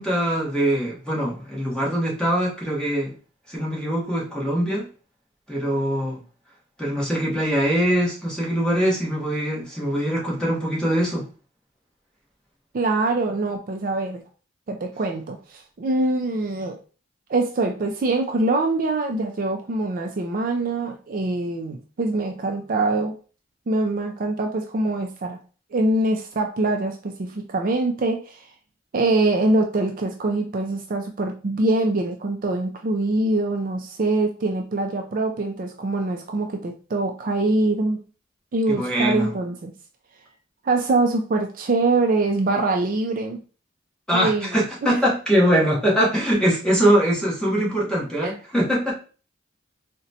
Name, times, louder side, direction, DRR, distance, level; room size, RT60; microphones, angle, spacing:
voice 1, 0.0-3.1 3.5-4.9 5.5-6.2 6.8-11.2 38.8-39.3 44.1-48.9, equal, 5° left, -4 dB, 1.0 m, -22 dB
voice 2, 12.7-14.2 14.7-16.8 17.3-23.1 23.7-25.4 25.7-28.4 28.9-38.0 38.5-39.7 40.6-43.4 44.1-44.6 44.8-45.0 48.2-48.3, right 2 dB, 45° right, 3 dB, 0.4 m, -24 dB
3.9 x 2.1 x 2.7 m, 0.36 s
head